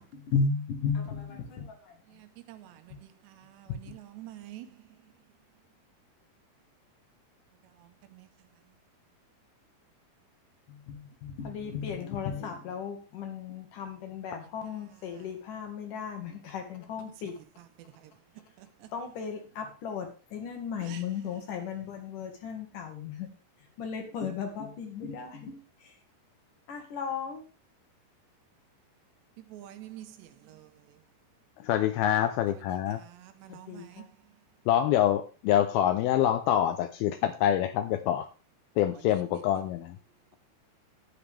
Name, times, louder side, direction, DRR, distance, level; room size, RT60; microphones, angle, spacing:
voice 1, 0.0-2.0 2.9-3.0 3.9-4.0 10.7-17.4 18.9-23.3 23.8-25.9 26.7-27.4 33.5-34.1, left 6 dB, 60° left, 2.6 m, -35 dB
voice 2, 2.1-4.9 7.7-8.5 15.1-15.3 17.0-17.1 17.6-18.1 18.6-18.9 20.8-21.0 29.4-31.0 33.2-34.1, right 13 dB, 85° right, 3.2 m, -49 dB
voice 3, 31.6-33.0 34.7-38.3 38.8-40.0, left 11 dB, 80° left, 2.3 m, -26 dB
10.5 x 10.0 x 3.4 m
omnidirectional pair, 4.8 m